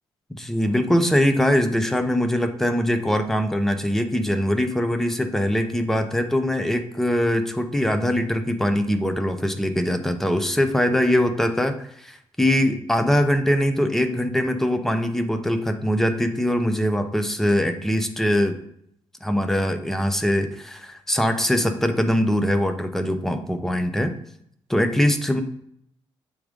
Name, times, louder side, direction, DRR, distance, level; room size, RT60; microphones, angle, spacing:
voice 1, 0.3-18.6 19.2-24.1 24.7-25.4, equal, 5° left, 8 dB, 0.6 m, -22 dB
7.7 x 3.6 x 5.0 m, 0.72 s
cardioid pair, 160°, 10 cm